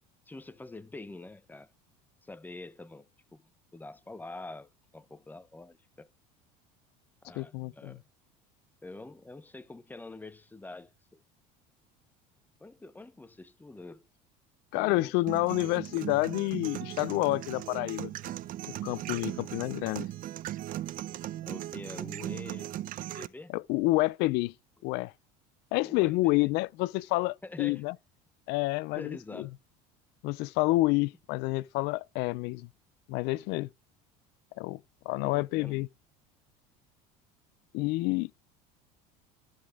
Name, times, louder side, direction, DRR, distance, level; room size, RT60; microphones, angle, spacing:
voice 1, 0.3-1.7 2.2-3.4 3.7-6.1 7.2-8.1 8.8-11.2 12.6-14.1 14.7-15.1 19.3-19.4 21.4-22.7 23.1-23.5 25.8-26.5 27.4-27.8 28.9-29.5 35.2-35.8, left 2 dB, 10° left, 0.8 m, -46 dB
voice 2, 7.4-8.0 14.7-18.1 18.7-20.1 23.5-24.5 24.8-25.1 25.7-27.9 28.5-29.5 30.2-32.7 33.1-33.7 34.6-34.8 35.1-35.9 37.7-38.3, left 21 dB, 65° left, 0.4 m, -29 dB
sound 1, 15.3-23.3, right 13 dB, 50° right, 0.7 m, -38 dB
13.5 x 5.0 x 3.5 m
supercardioid pair, 100°, 19 cm